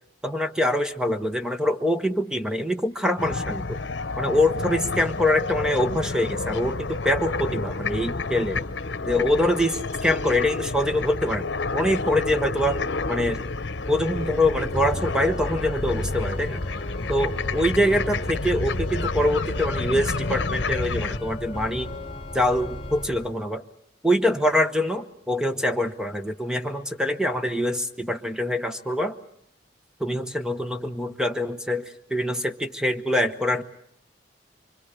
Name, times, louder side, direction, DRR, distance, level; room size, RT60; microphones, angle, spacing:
voice 1, 0.2-3.8 4.2-8.6 9.1-11.4 11.7-12.8 13.1-13.4 13.9-16.6 17.1-21.9 22.3-23.6 24.0-29.1 30.0-33.6, left 1 dB, 5° right, 8 dB, 0.9 m, -24 dB
sound 1, 3.2-21.2, left 3 dB, 70° left, 0.9 m, -30 dB
Organ, 14.1-23.3, left 1 dB, 30° left, 2.2 m, -33 dB
25.5 x 25.0 x 6.7 m, 0.72 s
head